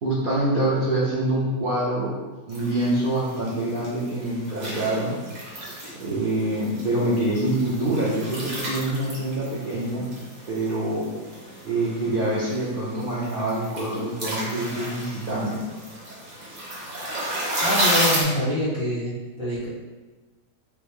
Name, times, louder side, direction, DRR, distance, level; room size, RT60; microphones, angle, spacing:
voice 1, 0.0-2.2 2.5-5.2 6.0-10.1 10.5-11.1 11.6-15.6, right 1 dB, 55° right, -7 dB, 0.6 m, -25 dB
sound 1, 2.5-18.2, right 1 dB, 35° right, 0.9 m, -32 dB
voice 2, 17.6-19.7, equal, 30° left, -9 dB, 0.5 m, -26 dB
4.3 x 2.0 x 3.5 m, 1.2 s
omnidirectional pair, 1.5 m